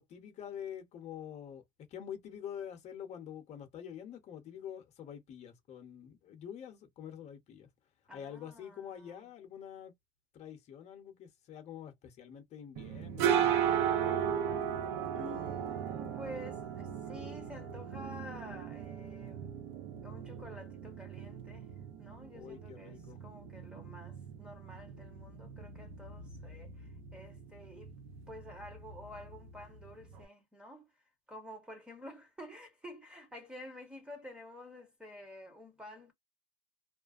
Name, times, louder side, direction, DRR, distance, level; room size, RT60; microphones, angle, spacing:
voice 1, 0.0-1.6 1.9-7.7 8.1-9.9 10.3-14.6 14.9-15.2 22.3-23.3, left 9 dB, 40° left, 0.8 m, -47 dB
voice 2, 8.1-9.3 15.1-19.6 20.0-21.7 22.0-27.9 28.3-36.1, left 1 dB, 5° right, 0.9 m, -50 dB
sound 1, 12.8-30.2, right 9 dB, 80° right, 0.7 m, -37 dB
2.4 x 2.2 x 2.4 m
cardioid pair, 140°, 17 cm